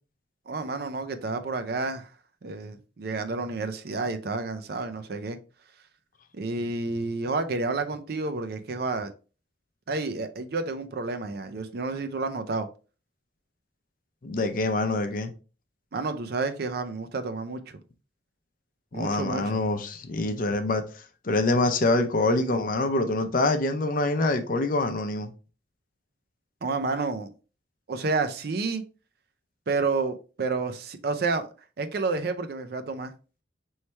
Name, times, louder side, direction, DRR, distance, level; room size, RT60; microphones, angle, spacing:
voice 1, 0.5-2.1 2.4-5.4 6.3-9.1 9.9-12.7 15.9-17.8 18.9-19.6 26.6-27.3 27.9-28.8 29.7-31.5 31.8-33.1, right 3 dB, 60° right, 0.5 m, -30 dB
voice 2, 14.2-15.3 18.9-20.8 21.2-25.3, left 2 dB, 50° left, 0.6 m, -25 dB
4.3 x 3.2 x 3.2 m
head